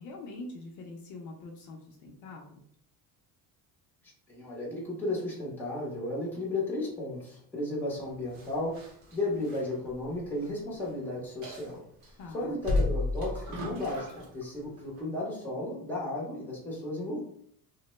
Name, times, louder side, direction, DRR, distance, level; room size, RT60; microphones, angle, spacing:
voice 1, 0.0-2.6 12.2-12.6, left 2 dB, 50° left, 0 dB, 0.6 m, -44 dB
voice 2, 4.3-11.8 12.3-17.2, left 2 dB, 5° left, -4 dB, 0.8 m, -34 dB
sound 1, 8.3-10.6 10.9-11.0 11.4-12.1 12.6-14.4 14.8-15.0, left 2 dB, 45° right, 0.9 m, -33 dB
3.1 x 2.1 x 3.0 m, 0.64 s
cardioid pair, 170°, 39 cm